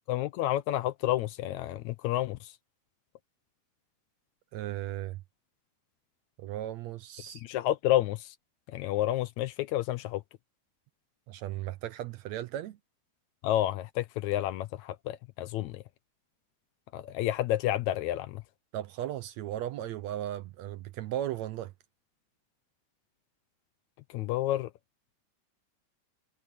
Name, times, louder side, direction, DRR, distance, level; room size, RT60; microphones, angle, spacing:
voice 1, 0.1-2.5 7.3-8.4 8.7-10.2 13.4-15.8 16.9-18.4 24.1-24.7, left 14 dB, 75° left, 1.9 m, -30 dB
voice 2, 4.5-5.2 6.4-7.4 11.3-12.8 18.7-21.7, right 13 dB, 75° right, 1.8 m, -36 dB
omnidirectional pair, 3.6 m